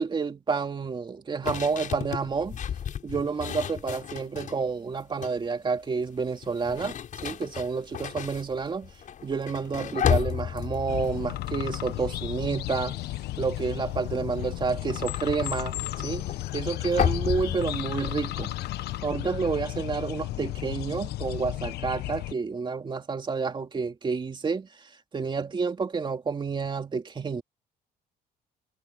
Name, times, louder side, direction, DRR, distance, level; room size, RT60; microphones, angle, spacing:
voice 1, 0.0-2.6 3.0-6.9 7.2-8.9 9.2-13.0 13.4-15.8 16.0-16.2 16.5-18.5 19.0-27.4, right 5 dB, 30° right, 2.9 m, -29 dB
sound 1, 1.4-4.6 5.0-5.5 6.4-12.6 12.9-13.3 13.5-19.0, left 8 dB, 50° left, 7.1 m, -33 dB
sound 2, 10.9-22.3, left 16 dB, 75° left, 1.0 m, -34 dB
cardioid pair, 110°, 17 cm